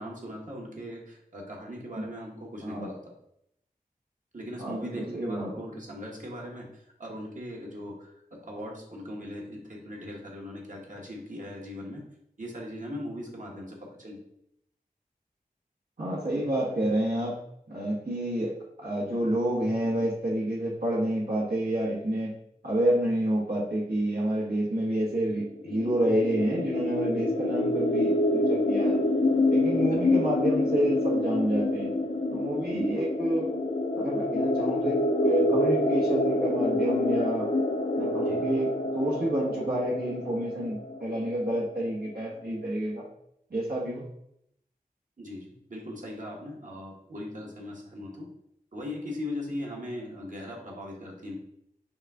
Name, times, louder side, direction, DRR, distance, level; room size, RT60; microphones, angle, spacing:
voice 1, 0.0-3.0 4.3-12.0 12.4-14.2 29.9-30.2 38.2-38.4 45.2-48.3 48.7-51.4, left 1 dB, 60° right, -2 dB, 1.2 m, -39 dB
voice 2, 4.6-5.5 16.0-17.4 17.7-22.3 22.6-29.0 29.5-31.9 32.3-33.5 33.9-37.5 38.0-38.7 38.9-43.0 43.5-44.0, right 1 dB, 85° right, -5 dB, 1.2 m, -29 dB
sound 1, 25.6-41.3, left 1 dB, 45° left, 0.4 m, -27 dB
5.3 x 2.4 x 3.6 m, 0.75 s
wide cardioid pair, 60°, 15 cm